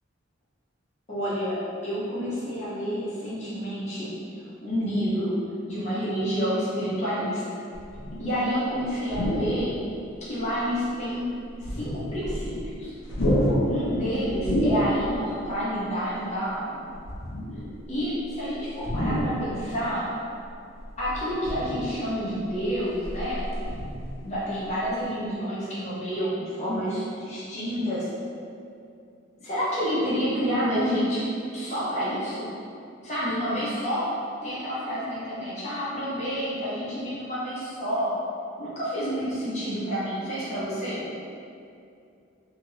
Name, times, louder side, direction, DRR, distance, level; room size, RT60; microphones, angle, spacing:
voice 1, 1.1-1.6 1.8-4.1 4.6-5.3 5.7-7.4 8.2-9.8 10.2-11.2 11.6-12.9 13.7-16.9 17.9-20.1 21.0-23.4 24.2-28.1 29.4-31.2 31.5-32.6 33.0-34.1 34.4-38.1 38.6-41.1, equal, 35° left, -9 dB, 0.9 m, -29 dB
sound 1, 7.7-8.4 9.0-9.8 10.4-10.5 11.5-12.7 13.0-15.3 15.6-15.7 16.9-17.8 18.8-19.7 20.8-22.1 22.6-24.3 24.7-24.9, equal, 80° left, 0.6 m, -28 dB
2.9 x 2.5 x 3.1 m, 2.5 s
head